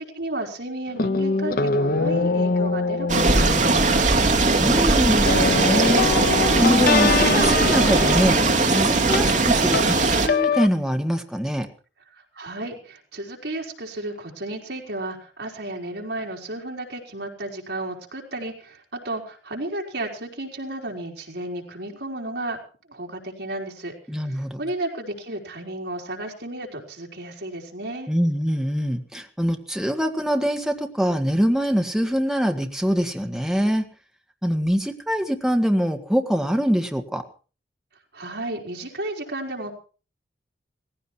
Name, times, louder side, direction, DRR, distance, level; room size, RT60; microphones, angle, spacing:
voice 1, 0.1-4.2 12.1-22.6 22.9-23.9 24.2-28.1 38.1-39.7, right 1 dB, 65° right, 0 dB, 4.5 m, -33 dB
sound 1, 0.9-10.7, left 4 dB, 55° left, 0.8 m, -24 dB
sound 2, 3.1-10.3, right 3 dB, 45° right, 2.5 m, -19 dB
voice 2, 4.6-6.1 6.5-8.4 8.7-11.7 24.1-24.6 28.1-33.9 34.4-37.2, equal, ahead, 4 dB, 1.8 m, -24 dB
18.0 x 16.0 x 4.6 m, 0.37 s
head